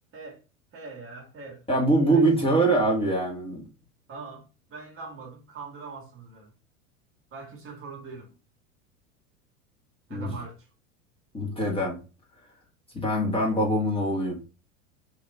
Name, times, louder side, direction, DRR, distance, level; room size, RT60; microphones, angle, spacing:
voice 1, 0.7-1.6 2.1-2.3 4.1-6.5 7.3-8.3 10.1-10.7, right 4 dB, 35° right, 1.5 m, -42 dB
voice 2, 1.7-3.6 10.1-10.3 11.3-12.0 12.9-14.4, right 1 dB, 15° left, 1.7 m, -23 dB
3.1 x 2.9 x 3.8 m
figure-of-eight pair, 80°, 40 cm